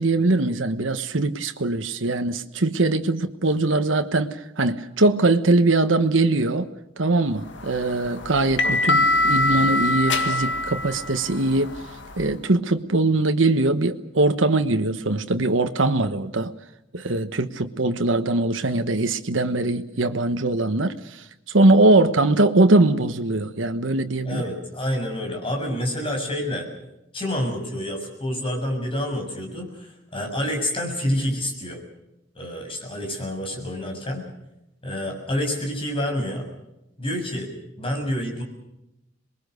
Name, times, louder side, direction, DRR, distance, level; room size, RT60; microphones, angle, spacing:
voice 1, 0.0-6.7 7.0-11.7 12.2-16.5 16.9-20.9 21.5-24.4, right 2 dB, 90° right, 8 dB, 1.2 m, -21 dB
sound 1, 7.5-12.3, left 2 dB, 70° left, 2.0 m, -24 dB
voice 2, 24.2-26.7 27.1-31.8 32.3-34.3 34.8-36.5 37.0-37.5 37.8-38.4, left 1 dB, 30° left, 3 dB, 6.9 m, -28 dB
27.0 x 21.5 x 6.6 m, 0.87 s
head